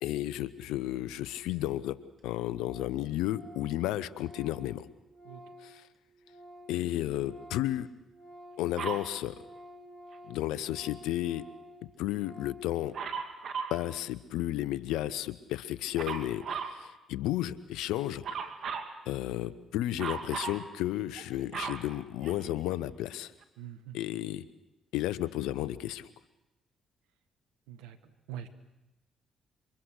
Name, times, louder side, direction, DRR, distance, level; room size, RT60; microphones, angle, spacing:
voice 1, 0.0-2.0 2.2-4.9 5.6-5.8 6.7-7.9 8.6-9.4 10.3-11.4 12.0-12.9 13.7-18.2 19.1-23.3 23.9-24.4 24.9-26.1, left 14 dB, 80° left, 16 dB, 1.0 m, -33 dB
Organ, 1.6-1.7 1.9-2.0 2.2-2.3 2.5-2.9 3.2-6.8 7.1-12.7, equal, 40° right, 6.7 m, -51 dB
Dog, 8.8-9.1 12.9-13.8 16.0-16.8 18.2-18.9 20.0-20.6 21.2-22.7 23.4-23.5, right 6 dB, 65° right, 2.5 m, -36 dB
voice 2, 23.6-24.0 27.7-28.5, right 10 dB, 85° right, 10 dB, 1.6 m, -44 dB
27.5 x 24.5 x 6.6 m, 0.97 s
hypercardioid pair, 50°, 0 cm